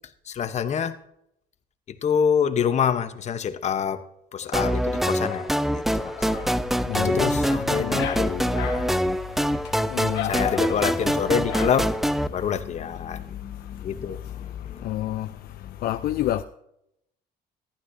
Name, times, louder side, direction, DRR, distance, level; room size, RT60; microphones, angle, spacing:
voice 1, 0.3-0.9 2.0-4.0 4.3-5.4 5.7-6.1 6.9-8.9 10.2-11.9 12.3-15.1 15.6-15.7, left 7 dB, 40° left, 0.9 m, -27 dB
Dog, 4.4-12.6, left 10 dB, 80° left, 1.4 m, -38 dB
sound 1, 4.5-12.3, equal, ahead, 0.3 m, -25 dB
voice 2, 6.9-7.3 7.7-8.1 9.9-10.3 14.8-15.3 15.8-16.4, left 13 dB, 60° left, 0.5 m, -28 dB
14.5 x 11.5 x 2.6 m
cardioid pair, 110°, 17 cm